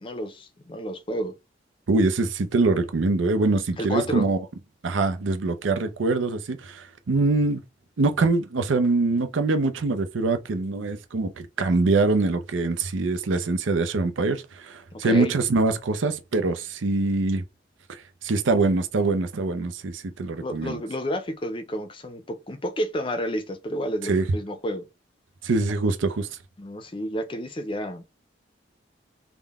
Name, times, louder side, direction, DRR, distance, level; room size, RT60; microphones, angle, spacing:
voice 1, 0.0-1.4 3.8-4.3 14.9-15.3 20.4-24.9 26.6-28.1, equal, 25° left, 0.5 m, -30 dB
voice 2, 1.9-4.4 4.8-7.6 8.0-17.4 17.9-20.8 24.0-24.3 25.4-26.3, right 3 dB, 85° right, 0.5 m, -24 dB
3.7 x 2.1 x 3.5 m
head